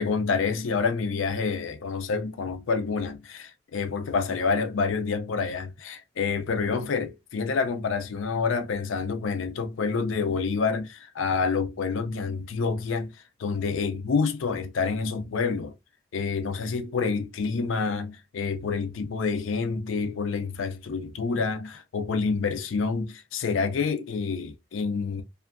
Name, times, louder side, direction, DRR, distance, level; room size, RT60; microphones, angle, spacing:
voice 1, 0.0-13.1 13.4-15.7 16.1-25.2, left 5 dB, 80° left, 0.4 m, -28 dB
2.6 x 2.3 x 2.4 m
head